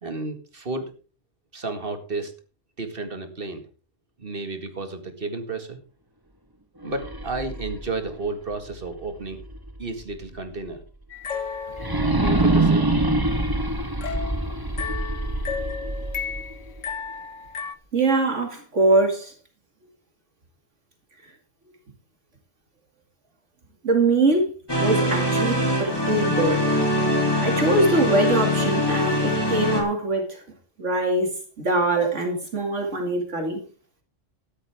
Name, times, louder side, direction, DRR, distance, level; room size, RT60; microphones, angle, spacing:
voice 1, 0.0-0.9 1.5-2.3 2.8-3.6 4.2-5.8 6.8-9.4 9.8-10.8 12.2-12.9, right 3 dB, 45° right, 2.0 m, -32 dB
sound 1, 6.8-9.8 10.2-10.3 11.7-16.8, right 2 dB, 20° right, 1.4 m, -25 dB
sound 2, 11.1-12.6 14.0-17.7, left 6 dB, 80° left, 1.5 m, -34 dB
voice 2, 17.9-19.3 23.8-24.5 24.8-26.7 27.4-30.4 30.8-31.3 31.6-33.6, right 2 dB, 70° right, 2.7 m, -22 dB
sound 3, 24.7-29.8, left 1 dB, 20° left, 3.1 m, -23 dB
13.0 x 12.5 x 3.5 m
omnidirectional pair, 1.3 m